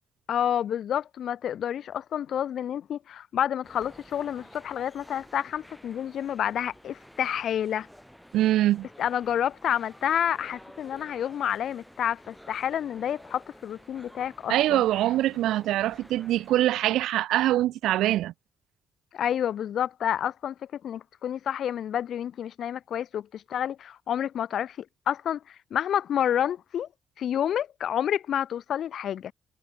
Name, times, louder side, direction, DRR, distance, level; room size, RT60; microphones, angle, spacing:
voice 1, 0.3-7.9 9.0-14.8 19.1-26.9 27.2-29.3, left 9 dB, 65° left, 1.4 m, -29 dB
sound 1, 3.6-16.6, equal, ahead, 3.8 m, -51 dB
voice 2, 8.3-8.9 14.5-18.3, right 14 dB, 85° right, 1.1 m, -24 dB
cardioid pair, 90°, 0 cm